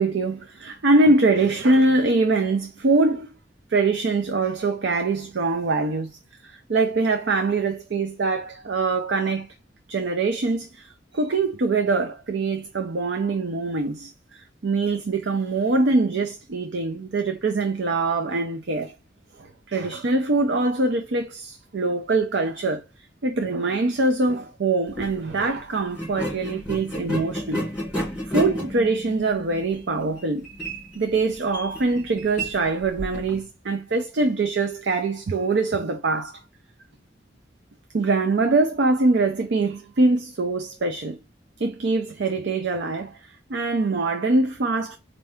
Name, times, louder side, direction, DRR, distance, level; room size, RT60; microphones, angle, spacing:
voice 1, 0.0-3.3 3.7-9.5 9.9-18.9 19.4-22.8 23.2-27.6 28.3-30.4 30.9-36.4 37.9-41.2 41.6-45.0, right 3 dB, 90° right, 0.5 m, -23 dB
sound 1, 24.9-25.1 25.9-33.4, equal, 5° right, 2.7 m, -32 dB
4.3 x 2.6 x 3.4 m
head